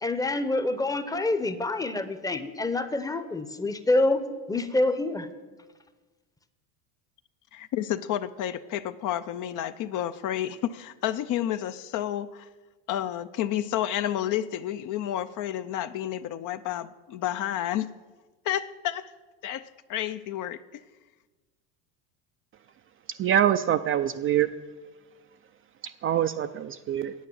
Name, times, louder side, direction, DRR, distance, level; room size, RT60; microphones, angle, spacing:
voice 1, 0.0-5.3, left 2 dB, 10° left, 11 dB, 0.7 m, -27 dB
voice 2, 7.5-12.5 12.9-17.9 18.4-19.1 19.4-20.8, left 11 dB, 50° left, 12 dB, 0.5 m, -30 dB
voice 3, 23.2-24.5 26.0-27.1, right 10 dB, 35° right, 9 dB, 0.4 m, -24 dB
9.5 x 8.3 x 7.2 m, 1.3 s
supercardioid pair, 110°, 42 cm